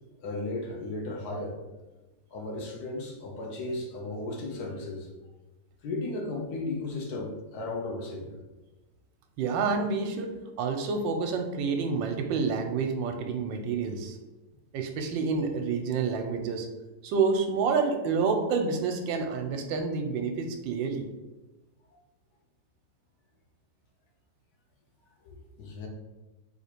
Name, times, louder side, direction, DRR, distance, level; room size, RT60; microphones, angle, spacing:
voice 1, 0.2-1.6 2.3-5.1 5.8-8.4 25.2-25.9, left 2 dB, 65° left, 0 dB, 1.2 m, -35 dB
voice 2, 9.4-14.2 14.7-16.7 17.0-21.1, right 5 dB, 90° right, 5 dB, 1.3 m, -28 dB
4.1 x 2.9 x 4.4 m, 1.1 s
omnidirectional pair, 2.0 m